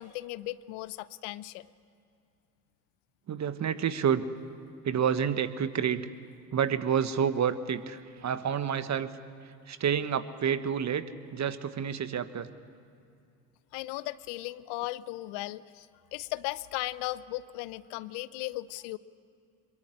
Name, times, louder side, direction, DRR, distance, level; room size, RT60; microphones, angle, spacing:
voice 1, 0.0-1.7 13.7-19.0, left 18 dB, 65° left, 17 dB, 0.8 m, -37 dB
voice 2, 3.3-4.3 4.8-6.1 6.5-9.1 9.7-11.0 11.3-12.5, right 8 dB, 40° right, 12 dB, 1.4 m, -29 dB
23.0 x 22.0 x 9.9 m, 2.4 s
hypercardioid pair, 60°, 44 cm